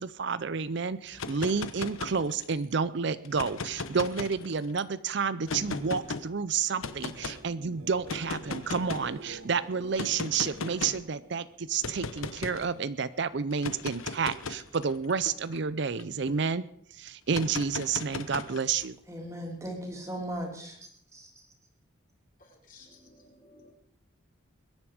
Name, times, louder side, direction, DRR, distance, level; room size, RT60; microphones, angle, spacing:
voice 1, 0.0-16.6 16.9-19.0, right 5 dB, 55° right, 16 dB, 0.5 m, -30 dB
sound 1, 1.1-2.6 3.3-4.8 5.5-6.2 6.8-7.4 8.1-9.2 10.0-11.1 11.8-12.7 13.5-16.3 17.3-18.9, left 3 dB, 80° left, 1.1 m, -37 dB
sound 2, 6.6-12.3 12.7-13.2 20.3-20.4, right 1 dB, 80° right, 2.8 m, -50 dB
voice 2, 19.1-21.3, equal, 15° right, 1 dB, 3.1 m, -38 dB
voice 3, 22.4-23.7, left 3 dB, 40° left, 0 dB, 4.2 m, -56 dB
22.0 x 10.5 x 5.0 m, 0.68 s
head